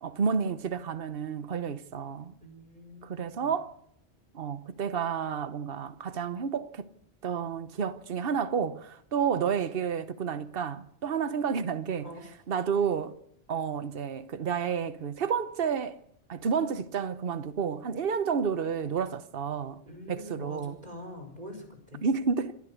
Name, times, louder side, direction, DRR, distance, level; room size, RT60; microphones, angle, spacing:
voice 1, 0.0-2.3 3.0-3.7 4.3-6.9 7.2-12.1 12.5-13.1 13.5-16.0 16.3-19.8 20.1-20.7 22.0-22.6, right 6 dB, 60° right, 1.2 m, -30 dB
voice 2, 2.4-3.6 12.0-12.3 19.9-22.0, left 1 dB, 40° right, 5.0 m, -45 dB
27.0 x 12.0 x 8.4 m
omnidirectional pair, 1.1 m